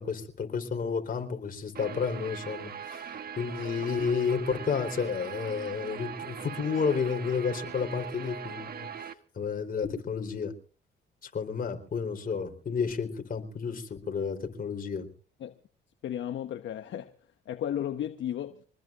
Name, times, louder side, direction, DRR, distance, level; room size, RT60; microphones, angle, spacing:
voice 1, 0.0-10.5 11.2-15.1, left 6 dB, 45° left, 4.0 m, -31 dB
Guitar, 1.7-9.1, right 8 dB, 50° right, 1.4 m, -40 dB
voice 2, 16.0-17.1 17.5-18.6, left 10 dB, 70° left, 1.1 m, -34 dB
25.5 x 20.0 x 2.6 m
cardioid pair, 90°, 20 cm